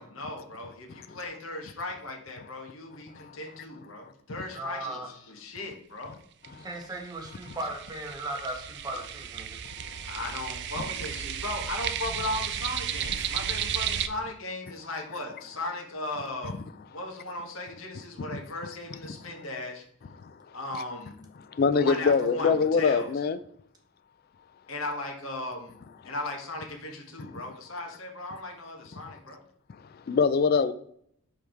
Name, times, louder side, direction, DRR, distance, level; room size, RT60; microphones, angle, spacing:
voice 1, 0.0-6.2 10.0-19.8 20.5-21.2 21.7-23.1 24.7-29.4, left 2 dB, 70° left, 1.4 m, -37 dB
voice 2, 4.5-5.1 6.5-9.6, right 2 dB, 20° right, 1.4 m, -37 dB
sound 1, 6.0-6.1 6.4-6.5 6.8-14.1, right 9 dB, 55° right, 0.4 m, -34 dB
voice 3, 9.8-10.1 18.3-18.4 20.2-20.6 21.5-23.4 28.9-29.2 29.7-30.7, left 5 dB, 45° left, 0.3 m, -25 dB
5.5 x 4.8 x 4.5 m
head